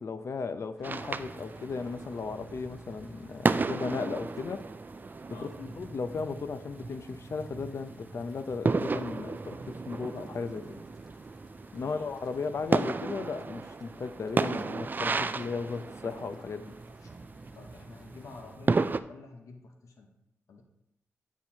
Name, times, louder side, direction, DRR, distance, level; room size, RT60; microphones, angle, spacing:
voice 1, 0.0-4.6 5.4-10.8 11.7-16.7, left 4 dB, 60° left, 10 dB, 0.5 m, -36 dB
Mechanical fan, 0.8-18.6, equal, ahead, 0.8 m, -56 dB
sound 1, 0.8-19.0, right 4 dB, 35° right, 0.3 m, -34 dB
voice 2, 11.8-12.1 17.0-17.1 17.5-20.1 20.5-20.6, left 3 dB, 80° left, 2 dB, 0.9 m, -49 dB
9.3 x 4.4 x 2.8 m, 0.80 s
cardioid pair, 60°, 5 cm